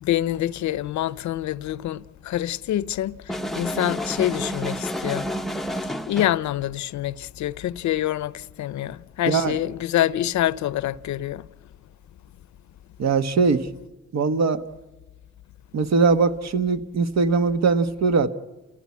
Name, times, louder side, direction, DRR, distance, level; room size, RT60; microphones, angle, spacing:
voice 1, 0.0-3.2 3.6-5.3 6.1-8.3 8.6-11.4, left 13 dB, 70° left, 0.7 m, -26 dB
sound 1, 3.3-6.4, equal, ahead, 0.7 m, -30 dB
voice 2, 9.2-9.6 13.0-13.7 14.1-14.6 15.7-18.3, right 4 dB, 60° right, 1.3 m, -21 dB
29.5 x 16.0 x 8.5 m
cardioid pair, 90°, 30 cm